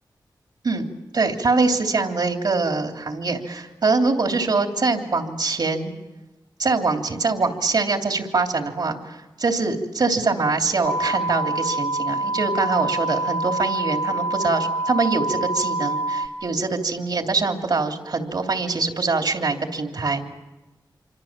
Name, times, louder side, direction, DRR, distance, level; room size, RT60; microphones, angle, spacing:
voice 1, 1.1-5.9 6.6-20.2, right 3 dB, 65° right, 3 dB, 3.2 m, -23 dB
sound 1, 10.8-16.3, right 2 dB, 85° left, 1.9 m, -26 dB
26.5 x 25.0 x 7.5 m, 1.1 s
wide cardioid pair, 75°, 8 cm